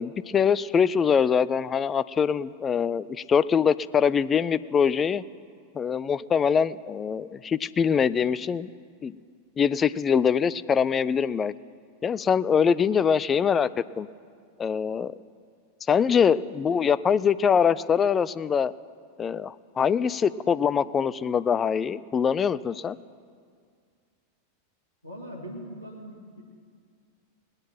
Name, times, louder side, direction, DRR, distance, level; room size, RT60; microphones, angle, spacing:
voice 1, 0.0-5.2 5.7-8.7 9.0-9.1 9.6-11.5 12.0-13.7 14.0-14.1 14.6-15.1 15.9-18.7 19.2-23.0, left 7 dB, 20° left, 16 dB, 0.3 m, -23 dB
voice 2, 25.0-26.4, equal, 85° left, -4 dB, 1.9 m, -40 dB
19.0 x 8.9 x 5.8 m, 2.2 s
figure-of-eight pair, 90°, 0 cm